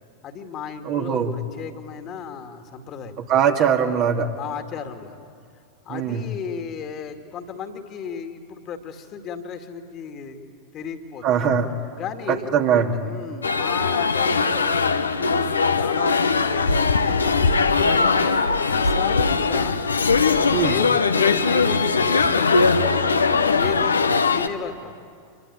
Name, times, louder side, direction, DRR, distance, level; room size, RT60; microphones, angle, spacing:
voice 1, 0.2-3.2 4.4-5.3 5.8-11.5 12.0-14.8 15.2-17.4 17.8-19.8 20.2-22.9 23.6-24.0 24.3-25.0, left 6 dB, 35° left, 6 dB, 2.2 m, -34 dB
voice 2, 0.9-1.3 3.3-4.3 5.9-6.2 11.2-11.7 12.3-13.1 20.5-20.8, right 7 dB, 40° right, 3 dB, 2.2 m, -21 dB
sound 1, 13.4-24.5, left 4 dB, 75° left, 1.2 m, -20 dB
26.5 x 22.0 x 9.8 m, 2.4 s
figure-of-eight pair, 90°, 0 cm